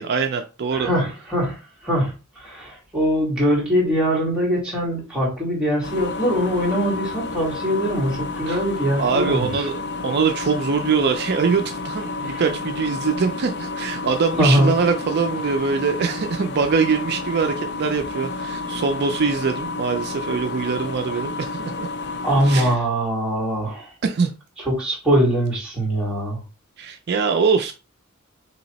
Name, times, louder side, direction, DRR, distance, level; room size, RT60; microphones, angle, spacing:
voice 1, 0.0-0.9 8.5-8.6 9.0-21.9 22.4-22.8 24.0-24.3 26.8-27.7, right 5 dB, 55° right, 0.4 m, -23 dB
voice 2, 0.7-9.7 12.2-12.4 14.4-14.7 22.2-23.9 24.7-26.4, equal, 5° right, 1.8 m, -22 dB
sound 1, 5.8-22.8, left 3 dB, 55° left, 0.4 m, -30 dB
3.3 x 2.9 x 4.0 m
head